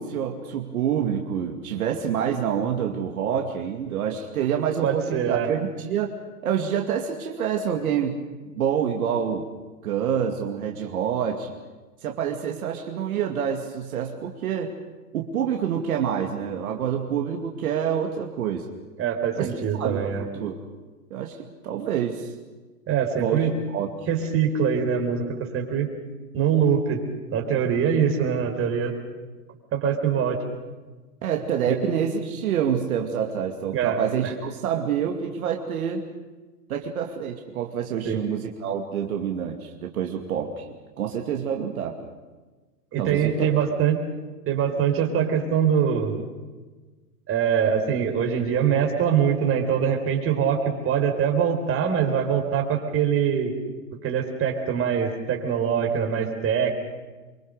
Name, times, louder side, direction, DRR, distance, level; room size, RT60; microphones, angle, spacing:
voice 1, 0.0-6.1 6.4-8.2 8.6-9.5 9.8-11.5 12.0-14.7 15.1-18.7 19.4-20.7 21.1-21.4 21.6-22.3 23.2-23.9 31.2-36.1 36.7-40.7 41.0-42.1 43.0-43.5, right 8 dB, 65° right, 2 dB, 2.4 m, -27 dB
voice 2, 4.8-5.5 19.0-20.3 22.9-23.5 24.1-25.9 26.3-27.0 27.3-28.9 29.7-30.4 31.7-31.8 33.7-34.0 34.2-34.3 38.0-38.2 42.9-44.0 44.5-46.2 47.3-53.5 54.0-56.7, right 7 dB, 30° right, 3 dB, 4.1 m, -23 dB
25.0 x 23.5 x 6.6 m, 1.3 s
hypercardioid pair, 110°, 46 cm